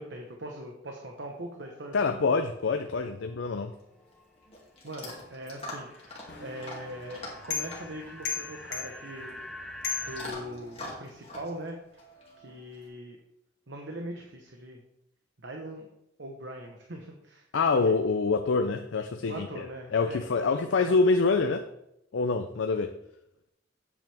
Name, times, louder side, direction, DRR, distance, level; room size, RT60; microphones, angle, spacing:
voice 1, 0.0-2.3 4.8-5.9 6.4-9.4 10.0-12.0 12.4-13.2 13.7-14.8 15.4-15.9 16.2-17.5 17.8-17.9 19.3-20.2 20.5-20.9, right 1 dB, 70° right, 1.0 m, -41 dB
sound 1, 1.2-4.5 4.9-10.3, left 1 dB, 5° left, 0.7 m, -47 dB
voice 2, 1.9-3.7 17.5-19.7 19.9-21.7 22.1-22.9, left 4 dB, 90° left, 0.5 m, -26 dB
Chewing mastication / Dog, 3.8-12.9, left 2 dB, 30° left, 2.2 m, -45 dB
sound 2, 6.3-11.0, left 7 dB, 65° left, 1.4 m, -38 dB
9.0 x 8.2 x 3.4 m
head